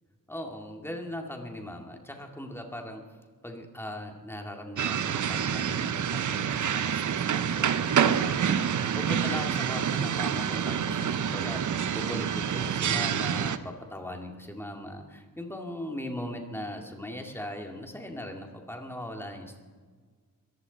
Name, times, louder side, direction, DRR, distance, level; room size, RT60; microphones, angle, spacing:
voice 1, 0.3-3.0 3.4-19.6, left 1 dB, 5° left, 2 dB, 2.2 m, -39 dB
sound 1, 4.8-13.6, right 8 dB, 65° right, 0.8 m, -27 dB
22.0 x 15.0 x 4.1 m, 1.5 s
wide cardioid pair, 130°, 33 cm